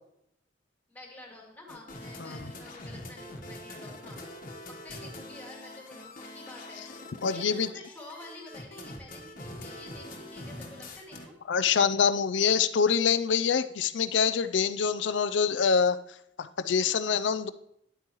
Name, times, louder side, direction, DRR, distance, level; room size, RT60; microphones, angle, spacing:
voice 1, 0.9-4.2 4.7-6.8 7.2-11.3, left 1 dB, 10° left, -1 dB, 2.3 m, -48 dB
sound 1, 1.7-11.3, left 1 dB, 50° left, 1.3 m, -44 dB
voice 2, 7.2-7.7 11.5-16.0 16.4-17.5, left 6 dB, 75° left, 13 dB, 0.5 m, -25 dB
10.0 x 8.2 x 3.1 m, 0.75 s
head